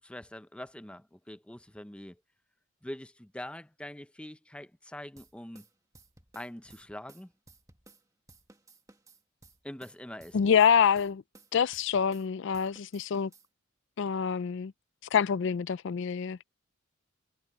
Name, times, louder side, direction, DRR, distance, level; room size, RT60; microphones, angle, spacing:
voice 1, 0.0-2.2 2.8-5.7 6.3-7.3 9.6-10.6, left 1 dB, 5° left, 0.5 m, -44 dB
sound 1, 5.2-8.0 8.3-12.3 12.5-13.5, right 2 dB, 15° right, 1.6 m, -57 dB
voice 2, 10.3-11.2 11.5-13.3 14.0-14.7 15.1-16.4, left 7 dB, 60° left, 0.4 m, -26 dB
head